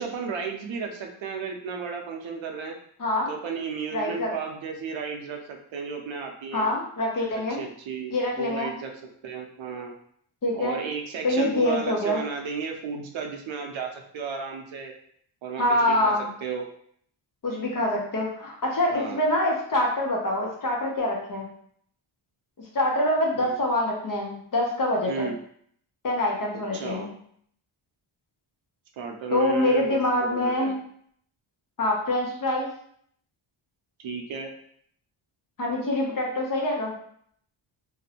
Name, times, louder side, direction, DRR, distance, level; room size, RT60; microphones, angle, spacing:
voice 1, 0.0-2.8 3.3-6.7 7.3-8.9 9.2-9.9 10.5-14.9 15.4-16.1 16.4-16.7 18.9-19.2 23.4-23.5 25.1-25.4 26.7-27.1 29.0-30.8 34.0-34.5, right 5 dB, 70° right, 3 dB, 0.5 m, -34 dB
voice 2, 3.0-3.3 3.9-4.3 6.5-7.6 8.1-8.7 10.4-10.8 11.2-12.2 15.6-16.3 17.4-21.5 22.7-25.3 26.0-27.1 29.3-30.8 31.8-32.7 35.6-36.9, left 1 dB, 45° left, -1 dB, 0.6 m, -25 dB
2.5 x 2.0 x 2.7 m, 0.65 s
wide cardioid pair, 155°, 49 cm